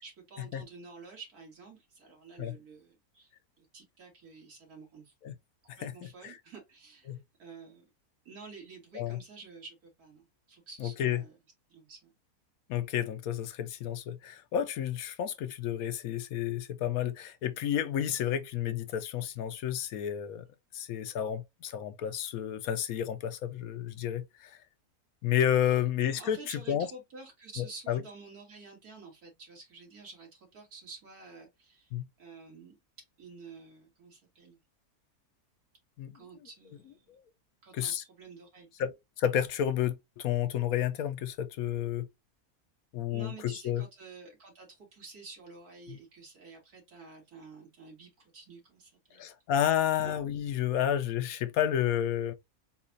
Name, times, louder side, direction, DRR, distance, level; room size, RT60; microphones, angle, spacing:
voice 1, 0.0-3.3 3.6-5.1 5.6-7.8 8.2-11.4 11.7-12.1 25.6-25.8 26.2-31.9 32.2-32.8 33.2-34.6 36.1-37.2 37.6-38.7 43.1-49.3 49.8-49.9, right 4 dB, 80° right, 2.5 m, -50 dB
voice 2, 10.8-11.2 12.7-20.4 20.7-24.6 25.2-26.4 26.7-26.9 27.6-28.0 31.9-32.1 36.0-36.2 37.1-37.2 37.7-38.0 38.8-42.1 42.9-43.8 45.9-46.0 49.2-52.3, left 10 dB, 75° left, 1.0 m, -31 dB
7.1 x 2.4 x 2.6 m
omnidirectional pair, 1.6 m